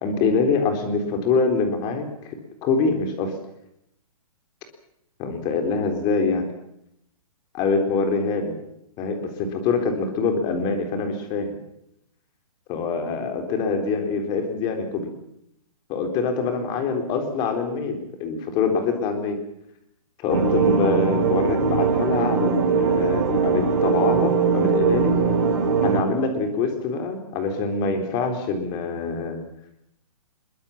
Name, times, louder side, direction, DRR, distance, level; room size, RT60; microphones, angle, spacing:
voice 1, 0.0-3.4 5.2-6.5 7.5-8.5 9.0-11.6 12.7-15.1 15.9-19.4 20.2-25.2 25.8-29.4, left 4 dB, 20° left, 5 dB, 3.9 m, -24 dB
sound 1, 20.3-26.0, right 5 dB, 40° right, 6.3 m, -21 dB
23.5 x 22.5 x 7.2 m, 0.77 s
hypercardioid pair, 160°, 19 cm